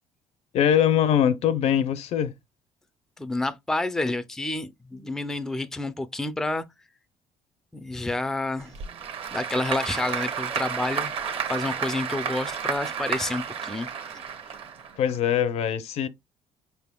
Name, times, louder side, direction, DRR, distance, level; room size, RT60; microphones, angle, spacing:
voice 1, 0.5-2.3 15.0-16.1, left 9 dB, 65° left, 0.5 m, -22 dB
voice 2, 3.2-6.6 7.7-8.7 9.3-11.1 11.5-13.9, left 2 dB, 5° left, 0.4 m, -29 dB
Applause / Crowd, 8.6-15.2, right 7 dB, 55° right, 1.1 m, -32 dB
5.4 x 3.4 x 2.2 m
cardioid pair, 125°, 12 cm